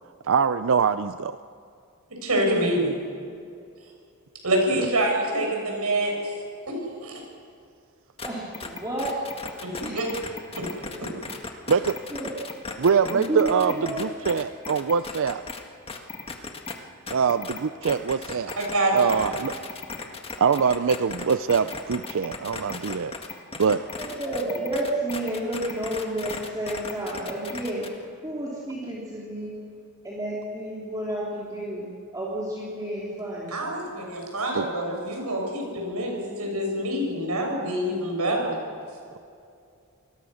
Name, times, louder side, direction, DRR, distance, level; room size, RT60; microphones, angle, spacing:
voice 1, 0.2-1.4 4.8-4.9 11.7-12.0 12.8-15.4 17.1-18.5 18.9-19.5 20.4-23.1 23.6-23.8 34.5-34.7, right 6 dB, 60° right, 12 dB, 0.5 m, -23 dB
voice 2, 2.2-2.9 4.4-6.1 7.0-7.2 9.6-9.7 9.9-10.1 18.6-18.9 33.5-38.5, right 1 dB, 85° right, 1 dB, 6.8 m, -26 dB
sound 1, 8.2-8.3 8.5-15.6 15.9-16.7 17.1-28.0, left 4 dB, 25° left, 1.8 m, -36 dB
voice 3, 8.2-10.0 10.9-11.1 11.6-11.7 12.1-12.3 12.7-14.1 24.0-29.5 30.0-33.6, right 1 dB, 15° right, -6 dB, 3.4 m, -31 dB
28.0 x 20.5 x 6.4 m, 2.4 s
head